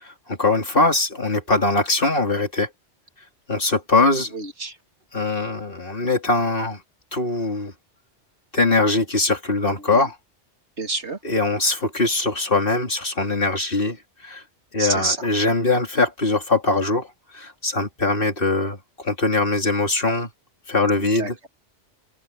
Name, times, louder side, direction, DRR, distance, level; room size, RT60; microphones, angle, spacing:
voice 1, 0.0-2.7 3.5-4.3 5.1-6.8 7.1-7.7 8.5-10.2 11.2-14.4 14.7-17.1 17.3-20.3 20.7-21.3, left 2 dB, 50° left, 3.3 m, -22 dB
voice 2, 4.3-4.8 9.8-10.1 10.8-11.2 14.8-15.3 21.0-21.5, right 3 dB, 70° right, 2.9 m, -29 dB
open air
omnidirectional pair, 1.2 m